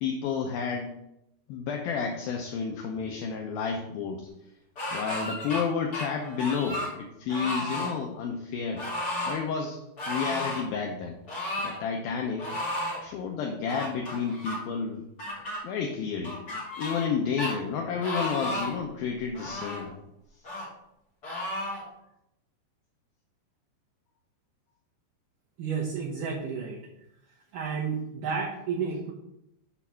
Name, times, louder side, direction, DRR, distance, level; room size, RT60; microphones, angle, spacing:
voice 1, 0.0-1.0 1.5-4.3 4.9-8.8 9.3-11.2 11.6-12.5 13.0-15.0 15.6-16.4 16.8-19.9, left 6 dB, 80° left, 2 dB, 2.2 m, -31 dB
sound 1, 4.8-5.6 5.9-6.9 7.3-7.9 8.8-9.4 10.0-10.6 11.3-11.8 12.4-13.0 13.7-14.6 15.2-15.6 16.2-17.1 17.4-17.5 18.0-18.8 19.3-19.9 20.4-20.7 21.2-21.8, left 1 dB, 40° left, 1.4 m, -33 dB
voice 2, 25.6-26.8 27.5-29.1, right 5 dB, 70° right, -3 dB, 2.1 m, -31 dB
7.2 x 4.5 x 5.6 m, 0.83 s
omnidirectional pair, 4.8 m